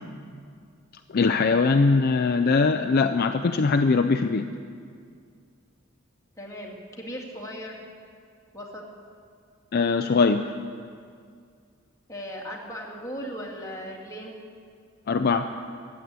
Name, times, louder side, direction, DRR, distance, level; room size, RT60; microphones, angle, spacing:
voice 1, 1.1-4.5 9.7-10.4 15.1-15.5, left 4 dB, 50° left, 7 dB, 0.5 m, -21 dB
voice 2, 6.4-7.8 8.5-8.8 12.1-14.4, equal, 15° left, -2 dB, 2.2 m, -37 dB
14.5 x 8.3 x 9.5 m, 2.2 s
head